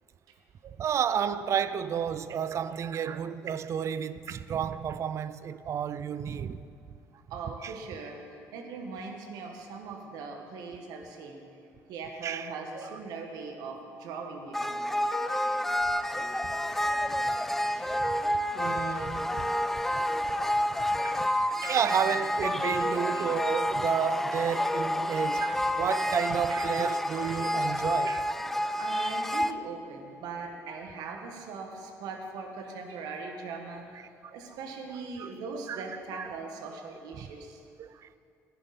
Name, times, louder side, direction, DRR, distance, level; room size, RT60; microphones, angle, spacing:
voice 1, 0.6-6.7 7.6-7.7 12.2-12.8 18.0-18.1 18.5-20.0 20.4-20.6 21.0-21.3 21.6-28.3 34.2-34.3 35.2-35.8 36.2-36.3 37.2-37.3 37.8-38.2, right 8 dB, 45° right, 0.5 m, -32 dB
voice 2, 7.3-8.2 8.5-11.4 11.9-14.9 21.8-22.2 22.6-22.9 28.8-37.6, right 4 dB, 75° right, 1.5 m, -40 dB
sound 1, 14.5-29.5, left 1 dB, 5° left, 0.4 m, -29 dB
14.5 x 10.0 x 4.2 m
supercardioid pair, 85°, 7 cm